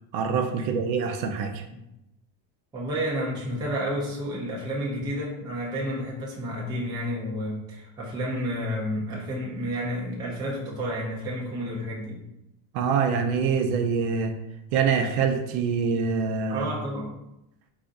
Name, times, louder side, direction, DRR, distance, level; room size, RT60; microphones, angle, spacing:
voice 1, 0.1-1.6 12.7-14.3 14.7-16.7, right 6 dB, 70° right, 6 dB, 0.6 m, -25 dB
voice 2, 2.7-12.2 16.5-17.1, equal, 10° right, -5 dB, 0.3 m, -30 dB
2.4 x 2.4 x 3.8 m, 0.87 s
cardioid pair, 150°, 48 cm